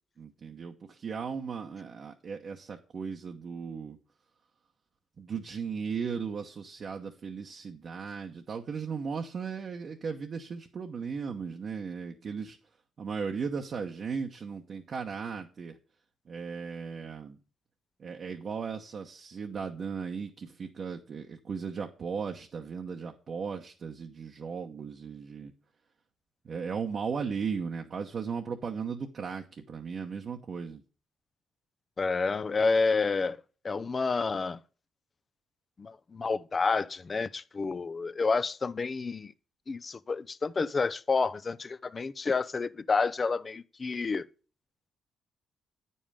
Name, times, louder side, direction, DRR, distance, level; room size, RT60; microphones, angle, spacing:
voice 1, 0.2-4.0 5.2-12.6 13.0-15.8 16.3-17.4 18.0-25.5 26.4-30.8, right 6 dB, 50° right, 0.9 m, -36 dB
voice 2, 32.0-33.4 33.6-34.6 35.8-39.3 39.7-44.2, left 4 dB, 35° left, 0.5 m, -29 dB
8.7 x 5.5 x 4.9 m
cardioid pair, 90°, 0 cm